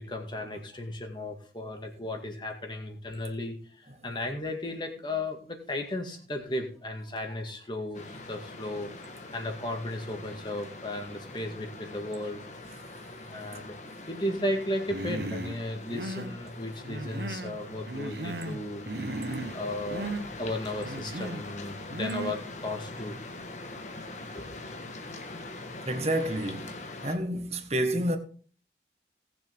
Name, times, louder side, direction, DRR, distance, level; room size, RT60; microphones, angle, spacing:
voice 1, 0.0-12.5 13.3-13.8 14.1-18.8 19.5-20.1 20.4-23.2 24.3-24.6, left 1 dB, 25° left, 2.1 m, -35 dB
sound 1, 7.9-27.2, left 2 dB, 40° left, 1.5 m, -43 dB
Human voice, 14.9-15.6 15.9-16.4 16.8-17.6 17.9-18.6 18.9-19.6 19.9-20.2 20.8-21.4 21.9-22.4, right 2 dB, 65° right, 1.1 m, -36 dB
voice 2, 25.9-26.7 27.0-28.2, right 1 dB, 35° right, 1.5 m, -29 dB
18.5 x 7.3 x 3.6 m
head